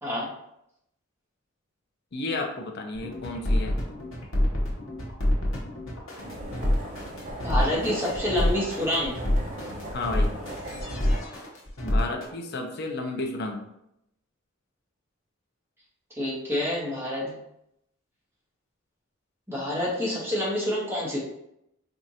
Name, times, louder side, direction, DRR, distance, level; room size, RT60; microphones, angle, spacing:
voice 1, 2.1-3.8 7.8-8.0 9.9-10.3 11.8-13.7, left 2 dB, 55° left, 3 dB, 0.6 m, -32 dB
sound 1, 3.0-12.3, left 1 dB, 80° left, 1.0 m, -27 dB
sound 2, 6.2-11.2, right 1 dB, 35° right, 0.9 m, -38 dB
voice 2, 7.4-9.1 16.2-17.4 19.5-21.2, left 1 dB, 10° right, -6 dB, 1.2 m, -27 dB
4.5 x 2.5 x 2.7 m, 0.79 s
head